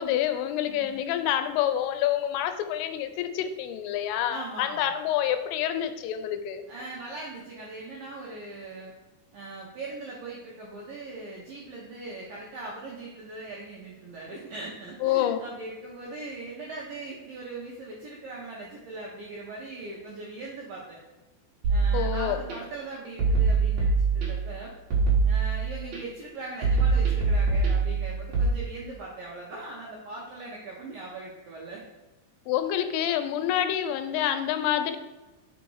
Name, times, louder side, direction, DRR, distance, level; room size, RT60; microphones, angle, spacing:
voice 1, 0.0-6.6 15.0-15.4 21.9-22.4 32.5-35.0, left 11 dB, 90° left, 8 dB, 3.2 m, -27 dB
voice 2, 0.7-1.0 4.3-4.9 6.7-8.9 9.3-21.0 21.7-24.7 25.2-31.8, right 2 dB, 80° right, -4 dB, 2.0 m, -40 dB
sound 1, 21.6-22.5 23.2-24.5 24.9-26.0 26.6-28.5, right 4 dB, 55° right, 2.0 m, -24 dB
5.8 x 5.4 x 4.6 m, 1.1 s
omnidirectional pair, 5.6 m